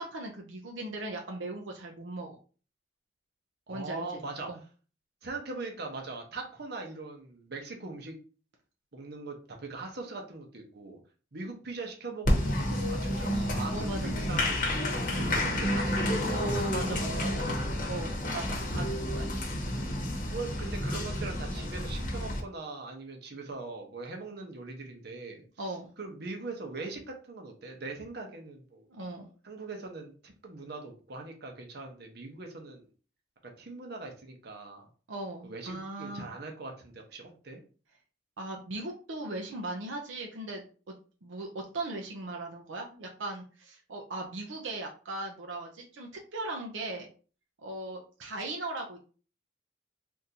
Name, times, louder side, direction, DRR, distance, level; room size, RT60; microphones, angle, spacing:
voice 1, 0.0-2.4 3.7-4.1 4.5-4.6 13.7-14.1 16.3-17.5 17.9-19.3 25.6-25.9 28.9-29.3 35.1-36.3 38.4-40.9 41.2-47.1 47.6-49.0, right 2 dB, 85° right, 1 dB, 0.6 m, -38 dB
voice 2, 3.7-4.5 5.2-8.2 8.9-11.0 11.3-14.8 15.2-16.3 20.3-28.9 29.4-32.9 33.6-34.9 35.4-37.6, right 3 dB, 60° right, 2 dB, 0.8 m, -41 dB
Applause, 12.2-22.4, left 1 dB, 45° left, 0.9 m, -30 dB
3.7 x 2.6 x 2.8 m, 0.38 s
head